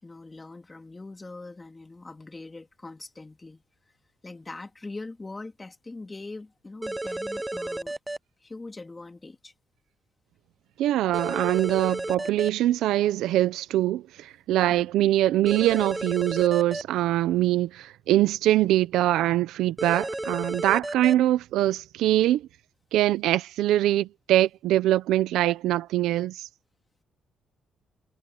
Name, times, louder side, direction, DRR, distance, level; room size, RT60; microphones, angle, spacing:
voice 1, 0.0-3.6 4.2-7.9 8.4-9.5 14.7-14.8, left 3 dB, 20° left, 3.4 m, -42 dB
sound 1, 6.8-8.2 11.1-12.5 15.5-16.8 19.8-21.1, right 2 dB, 10° right, 0.4 m, -32 dB
voice 2, 10.8-22.4 22.9-26.5, right 14 dB, 85° right, 0.8 m, -23 dB
cardioid pair, 90°, 0 cm